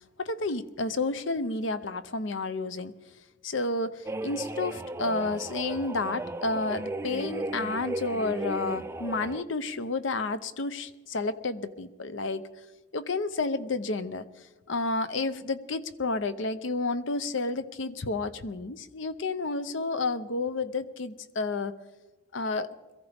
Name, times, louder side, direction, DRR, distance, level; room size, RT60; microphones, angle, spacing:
voice 1, 0.2-2.9 3.4-12.4 12.9-14.2 14.7-21.7 22.3-22.7, left 3 dB, 70° left, 13 dB, 0.7 m, -31 dB
sound 1, 4.1-9.4, right 2 dB, 15° right, 0.4 m, -35 dB
22.5 x 15.0 x 3.5 m, 1.2 s
head